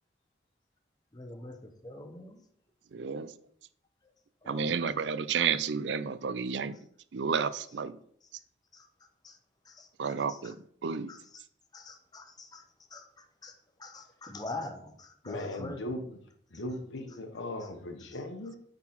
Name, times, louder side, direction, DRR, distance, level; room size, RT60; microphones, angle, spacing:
voice 1, 1.1-2.5 4.0-4.1 4.4-4.9 8.2-8.4 8.7-8.9 9.2-9.4 9.6-10.5 11.1-11.4 11.7-12.6 12.9-15.8 17.6-17.7 18.0-18.1, left 2 dB, 20° left, 0.8 m, -45 dB
voice 2, 2.9-3.3 4.5-6.8 7.1-8.0 10.0-10.6 10.8-11.1, right 6 dB, 70° right, 0.5 m, -31 dB
voice 3, 15.2-16.2 16.5-18.6, left 1 dB, 85° left, 1.2 m, -38 dB
8.7 x 4.0 x 5.8 m
head